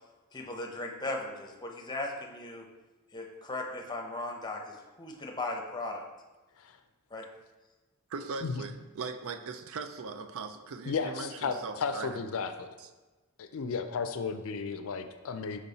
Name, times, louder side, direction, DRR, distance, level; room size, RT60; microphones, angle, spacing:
voice 1, 0.3-2.7 3.1-6.0 7.1-7.3, left 2 dB, 20° left, 1 dB, 0.8 m, -37 dB
voice 2, 8.1-12.2 12.8-12.9, right 4 dB, 65° right, 9 dB, 0.4 m, -39 dB
voice 3, 10.9-12.7 13.4-15.6, left 5 dB, 65° left, 9 dB, 0.4 m, -34 dB
5.4 x 5.1 x 4.0 m, 1.2 s
head